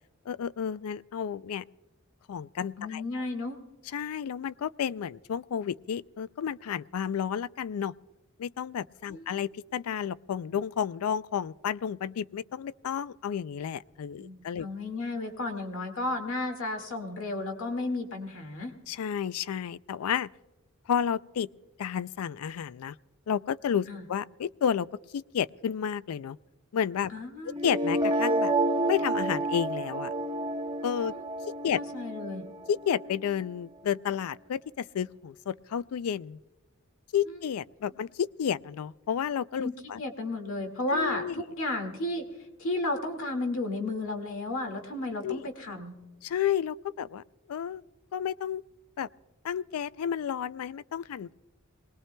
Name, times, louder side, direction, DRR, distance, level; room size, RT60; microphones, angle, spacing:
voice 1, 0.3-1.6 2.3-3.2 3.9-7.9 8.4-14.7 18.9-20.3 20.9-21.5 21.8-23.0 23.3-24.9 25.1-26.4 26.7-27.1 27.6-28.5 28.8-30.1 30.8-31.1 31.6-31.8 32.7-36.4 37.1-40.0 40.9-41.3 45.2-45.4 46.2-47.8 48.1-48.6 49.0-49.1 49.4-51.3, left 8 dB, 85° left, 0.4 m, -31 dB
voice 2, 2.8-3.6 9.1-9.3 14.1-18.7 23.9-24.0 27.1-27.5 31.0-31.2 31.8-32.5 37.3-37.4 39.6-39.7 40.0-42.3 42.6-45.9, left 2 dB, 65° left, 2.0 m, -33 dB
sound 1, 27.5-33.5, right 1 dB, 20° right, 1.1 m, -30 dB
24.5 x 20.0 x 2.2 m
head